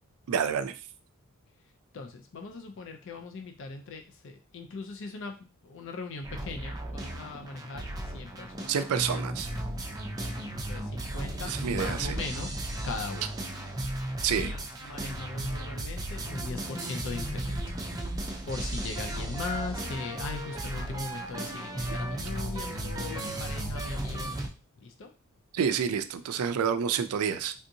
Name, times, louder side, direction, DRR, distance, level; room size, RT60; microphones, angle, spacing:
voice 1, 0.3-0.8 8.7-9.5 11.5-12.2 14.2-14.5 21.9-22.0 25.5-27.5, right 7 dB, 80° right, 11 dB, 0.4 m, -28 dB
voice 2, 1.9-5.3 5.6-8.7 9.1-9.2 10.2-10.3 10.7-12.6 12.8-13.3 14.3-18.0 18.5-24.4 24.8-25.1, left 3 dB, 60° left, 4 dB, 0.4 m, -39 dB
sound 1, 6.2-24.5, right 1 dB, 15° right, 0.4 m, -35 dB
3.5 x 2.7 x 2.6 m, 0.32 s
head